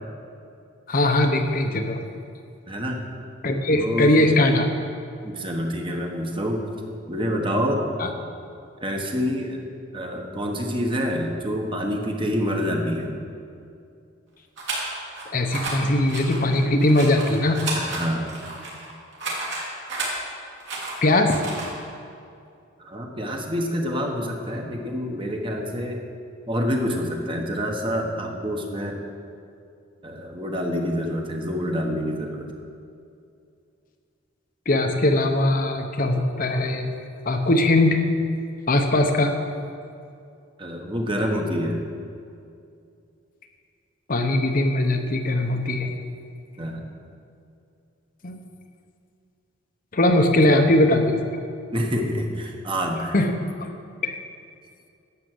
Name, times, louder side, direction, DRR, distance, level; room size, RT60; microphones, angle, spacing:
voice 1, 0.9-2.0 3.4-4.7 8.0-8.1 15.3-17.6 21.0-21.4 34.7-36.9 37.3-38.0 38.7-39.3 44.1-45.9 48.2-48.4 49.9-51.2 53.1-53.3 54.0-54.2, left 1 dB, 45° left, 4 dB, 0.8 m, -20 dB
voice 2, 2.7-3.1 3.8-4.3 5.2-6.7 7.1-7.9 8.8-9.6 9.9-13.2 17.7-18.3 22.8-26.0 26.5-29.0 30.0-32.5 40.6-41.8 46.6-46.8 50.3-50.6 51.7-53.1, equal, 25° right, 2 dB, 1.3 m, -27 dB
sound 1, 14.6-15.2 15.5-15.7 16.1-20.1 20.6-21.7, right 3 dB, 60° right, 3.2 m, -32 dB
11.5 x 7.6 x 7.8 m, 2.5 s
head